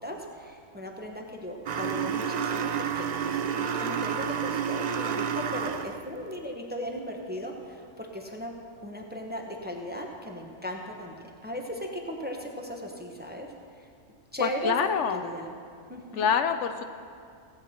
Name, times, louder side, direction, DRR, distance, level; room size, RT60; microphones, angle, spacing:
voice 1, 0.0-8.5 8.8-13.5 13.8-13.9 14.3-14.7 15.1-15.5 15.9-16.3, equal, 10° right, 1 dB, 0.9 m, -37 dB
sound 1, 1.7-6.1, right 7 dB, 90° right, 0.3 m, -30 dB
voice 2, 14.4-15.2 16.2-16.8, left 7 dB, 75° left, 8 dB, 0.9 m, -26 dB
17.0 x 8.2 x 4.3 m, 2.3 s
omnidirectional pair, 1.3 m